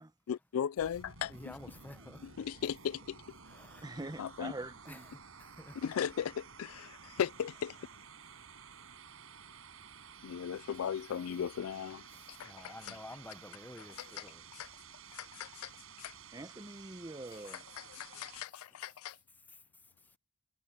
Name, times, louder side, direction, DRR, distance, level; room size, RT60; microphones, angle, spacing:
voice 1, 0.3-1.5 2.2-3.2 4.2-4.5 5.8-7.8 10.2-12.1 12.4-13.0 13.8-14.3 14.5-14.7 15.1-15.7 16.0-16.1 17.5-19.2, left 8 dB, 70° left, 0.4 m, -37 dB
sound 1, 0.8-18.5, right 6 dB, 70° right, 5.9 m, -53 dB
voice 2, 1.3-2.3 3.5-3.9 4.9-5.8 8.3-8.4 12.1-14.4 19.5-19.6, left 1 dB, 10° left, 0.8 m, -51 dB
voice 3, 3.8-5.1 16.3-17.6, right 2 dB, 20° right, 1.0 m, -44 dB
head